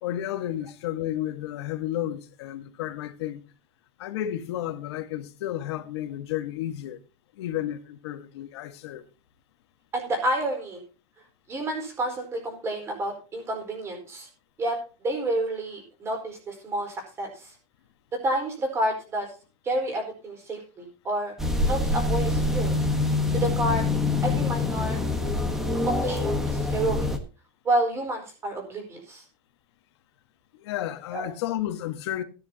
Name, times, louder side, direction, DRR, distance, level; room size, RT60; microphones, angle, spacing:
voice 1, 0.0-3.4 4.0-7.0 7.3-9.0 30.5-32.2, left 12 dB, 75° left, 1.6 m, -32 dB
voice 2, 9.9-10.8 11.5-14.3 14.6-17.5 18.2-19.3 19.6-21.3 21.6-22.8 23.3-23.8 24.2-25.0 25.8-27.1 27.6-29.2 31.1-31.3, right 1 dB, 20° right, 4.5 m, -29 dB
sound 1, 21.4-27.2, left 2 dB, 5° right, 1.3 m, -25 dB
17.0 x 10.0 x 2.9 m
supercardioid pair, 165°, 14 cm